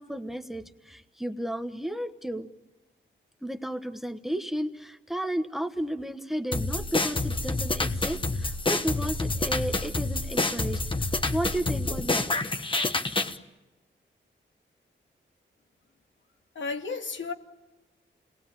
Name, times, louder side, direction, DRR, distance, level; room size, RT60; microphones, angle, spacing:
voice 1, 0.0-2.5 3.4-12.3, right 1 dB, ahead, 1.1 m, -33 dB
sound 1, 6.5-13.4, left 2 dB, 25° left, 1.3 m, -28 dB
voice 2, 16.5-17.3, left 4 dB, 80° left, 2.2 m, -33 dB
30.0 x 19.5 x 8.9 m
wide cardioid pair, 180°, 20 cm